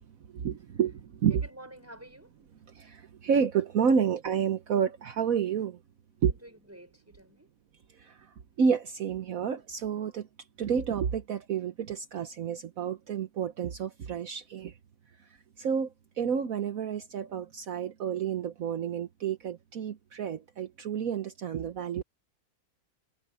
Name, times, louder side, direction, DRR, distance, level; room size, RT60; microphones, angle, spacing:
voice 1, 0.3-1.4 2.7-5.8 6.2-6.3 7.9-10.3 10.6-14.8 15.6-22.0, right 7 dB, 65° right, 1.4 m, -30 dB
voice 2, 1.3-2.3 6.3-7.5, right 1 dB, 10° right, 5.4 m, -49 dB
omnidirectional pair, 1.6 m